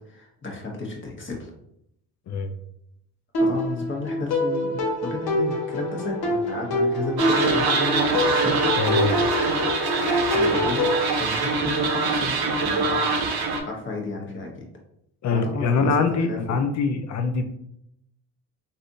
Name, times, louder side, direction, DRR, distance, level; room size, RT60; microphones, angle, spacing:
voice 1, 0.0-1.5 3.4-8.6 10.3-10.9 11.2-13.1 13.6-14.7 15.3-16.6, left 3 dB, 30° left, 0 dB, 1.1 m, -33 dB
sound 1, 3.3-11.0, left 1 dB, 65° left, 1.0 m, -25 dB
sound 2, 7.2-13.6, right 3 dB, 65° right, 0.7 m, -24 dB
voice 2, 8.8-9.2 15.2-17.5, left 4 dB, 45° left, 7 dB, 0.6 m, -23 dB
3.3 x 2.6 x 2.6 m, 0.76 s
supercardioid pair, 75°, 40 cm